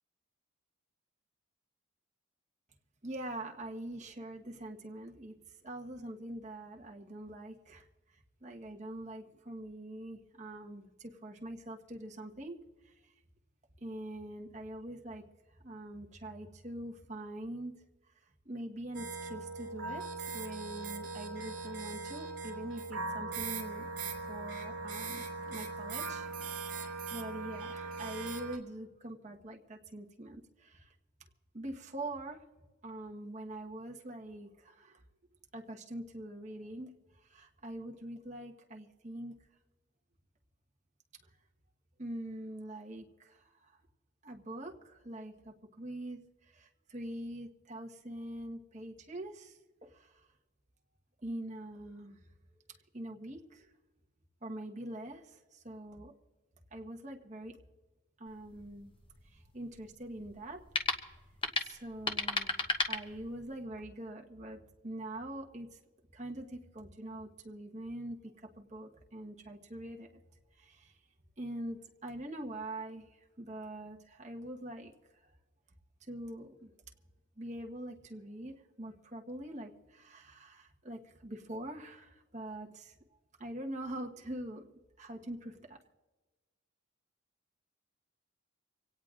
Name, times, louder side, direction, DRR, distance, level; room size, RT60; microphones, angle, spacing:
voice 1, 3.0-5.3 5.6-7.9 8.1-12.6 12.8-13.1 13.8-15.2 15.6-17.8 18.4-23.9 24.3-30.9 31.5-32.5 32.8-35.0 35.5-36.9 37.2-39.4 42.0-43.7 44.2-50.2 51.2-52.2 52.7-53.7 54.4-56.1 56.7-57.6 58.2-58.9 59.2-60.6 61.6-65.8 66.1-70.2 70.6-71.0 71.4-74.9 76.0-76.7 77.4-83.0 83.4-84.6 85.0-85.8, right 1 dB, 35° right, 0 dB, 1.2 m, -44 dB
sound 1, 18.9-28.6, right 4 dB, 60° right, 2.9 m, -40 dB
sound 2, 58.3-63.6, left 3 dB, 25° left, 1.0 m, -37 dB
25.0 x 17.5 x 2.5 m, 1.2 s
head